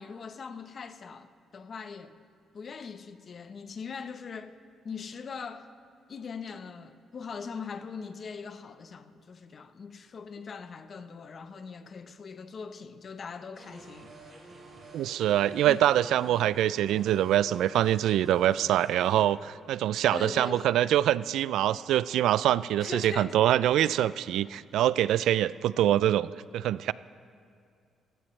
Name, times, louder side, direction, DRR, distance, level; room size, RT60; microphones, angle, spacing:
voice 1, 0.0-2.2 2.5-4.5 4.8-5.7 6.1-14.3 15.6-15.8 16.3-16.4 20.1-21.0 22.8-23.4, left 5 dB, 45° left, 0.9 m, -41 dB
sound 1, 13.5-19.2, right 2 dB, 40° right, 5.0 m, -49 dB
voice 2, 14.9-26.9, right 12 dB, 80° right, 0.3 m, -25 dB
26.5 x 16.0 x 3.2 m
cardioid pair, 90°, 0 cm